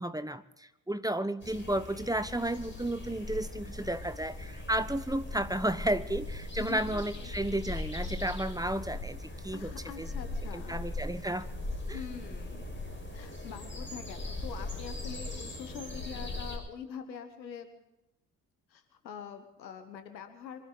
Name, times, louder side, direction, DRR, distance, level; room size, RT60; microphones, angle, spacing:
voice 1, 0.0-9.7 10.0-10.1 10.5-11.5 11.9-12.0, right 1 dB, 5° right, 11 dB, 1.3 m, -33 dB
sound 1, 1.4-16.6, left 2 dB, 25° left, 5.4 m, -39 dB
voice 2, 6.6-7.3 9.5-10.8 11.9-12.7 13.1-17.7 18.7-20.6, left 7 dB, 85° left, 7 dB, 1.5 m, -44 dB
25.5 x 13.5 x 4.1 m, 0.91 s
figure-of-eight pair, 40°, 50 cm